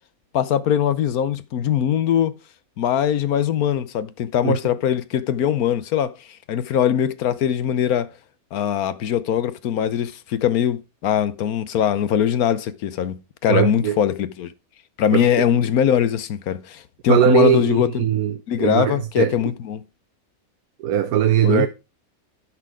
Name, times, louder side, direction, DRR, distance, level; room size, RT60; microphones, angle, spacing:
voice 1, 0.3-2.3 2.8-6.1 6.5-8.1 8.5-13.2 13.4-14.5 15.0-18.1 18.5-19.8 21.4-21.7, left 9 dB, 80° left, 1.3 m, -21 dB
voice 2, 13.5-14.0 15.1-15.5 17.1-19.4 20.8-21.7, right 11 dB, 90° right, 1.2 m, -20 dB
10.5 x 6.2 x 4.8 m
omnidirectional pair, 1.5 m